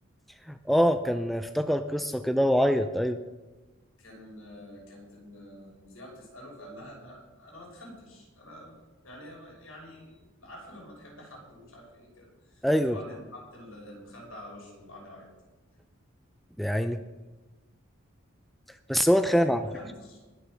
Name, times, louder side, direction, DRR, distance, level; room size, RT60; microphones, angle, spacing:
voice 1, 0.5-3.2 12.6-13.0 16.6-17.0 18.9-19.6, equal, ahead, 9 dB, 0.4 m, -24 dB
voice 2, 4.0-15.3 19.3-20.2, left 1 dB, 80° left, -2 dB, 5.9 m, -47 dB
20.5 x 6.9 x 6.3 m, 1.2 s
head